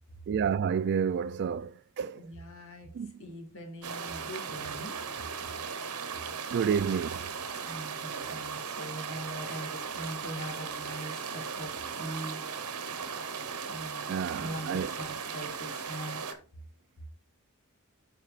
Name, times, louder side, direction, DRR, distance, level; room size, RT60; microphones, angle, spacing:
voice 1, 0.3-2.2 2.9-3.1 6.5-7.3 14.1-14.9, right 7 dB, 50° right, 0.3 m, -30 dB
voice 2, 2.1-2.9 3.2-4.9 7.6-12.4 13.5-16.2, equal, 65° left, 2.1 m, -42 dB
sound 1, 3.8-16.3, right 6 dB, 80° right, 0.9 m, -37 dB
12.5 x 4.4 x 2.5 m
head